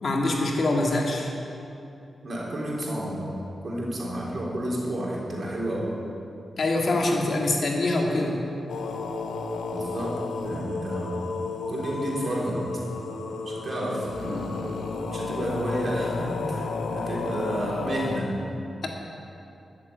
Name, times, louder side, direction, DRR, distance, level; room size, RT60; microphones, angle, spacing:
voice 1, 0.0-1.3 6.6-8.4, left 2 dB, 65° left, 0 dB, 2.0 m, -24 dB
voice 2, 2.2-3.4 3.6-6.0 9.7-11.2 11.7-12.7 13.5-14.5 15.1-18.4, right 1 dB, 55° right, -4 dB, 3.6 m, -31 dB
sound 1, 8.7-18.2, left 4 dB, 90° left, 0.8 m, -32 dB
12.5 x 7.5 x 7.8 m, 2.8 s
supercardioid pair, 45°, 0 cm